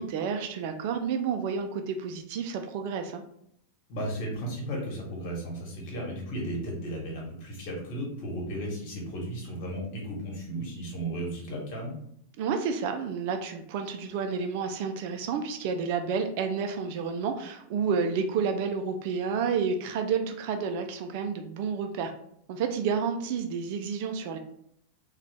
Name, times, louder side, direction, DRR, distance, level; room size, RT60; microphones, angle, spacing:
voice 1, 0.0-3.2 12.4-22.1 22.5-24.4, right 6 dB, 45° right, 6 dB, 0.4 m, -30 dB
voice 2, 3.9-11.9, right 1 dB, 45° left, -2 dB, 1.4 m, -35 dB
3.8 x 2.4 x 3.3 m, 0.70 s
figure-of-eight pair, 90°, 0 cm